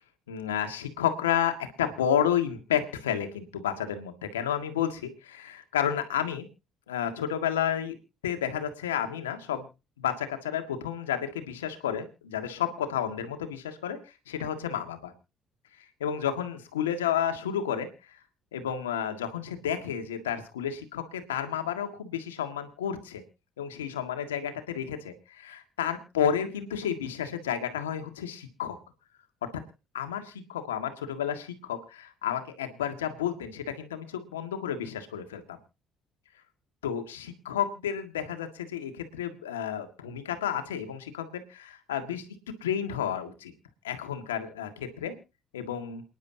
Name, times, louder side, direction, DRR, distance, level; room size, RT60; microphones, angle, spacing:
voice 1, 0.3-6.5 6.9-8.0 8.2-9.7 10.0-14.0 14.3-15.1 16.0-17.9 18.5-23.2 23.6-28.8 29.9-35.6 36.8-42.3 42.6-43.5 43.8-45.2 45.5-46.0, left 9 dB, 90° left, 7 dB, 1.8 m, -31 dB
28.5 x 10.5 x 2.8 m, 0.30 s
hypercardioid pair, 55°, 0 cm